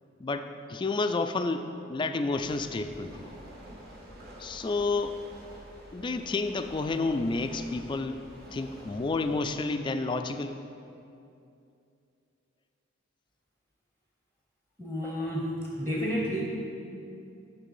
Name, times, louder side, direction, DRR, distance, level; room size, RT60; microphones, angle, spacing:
voice 1, 0.2-3.3 4.4-5.2 5.9-8.2 8.5-10.6, left 3 dB, 25° left, 8 dB, 0.3 m, -30 dB
sound 1, 2.3-9.4, equal, 50° right, 1.6 m, -48 dB
voice 2, 14.8-16.5, equal, 10° right, -4 dB, 0.9 m, -31 dB
10.0 x 3.3 x 7.0 m, 2.6 s
head